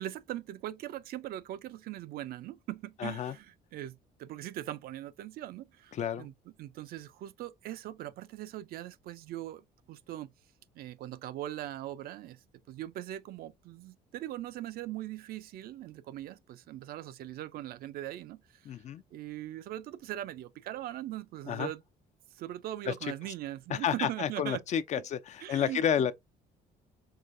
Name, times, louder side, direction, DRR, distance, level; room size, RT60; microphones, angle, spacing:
voice 1, 0.0-6.3 6.6-10.3 10.8-18.8 19.1-21.8 22.3-24.6 25.4-26.1, right 13 dB, 65° right, 0.4 m, -40 dB
voice 2, 3.0-3.3 5.9-6.3 18.7-19.0 21.5-21.7 22.9-23.0 23.7-26.1, left 9 dB, 45° left, 0.4 m, -30 dB
4.7 x 2.2 x 2.5 m
cardioid pair, 110°, 17 cm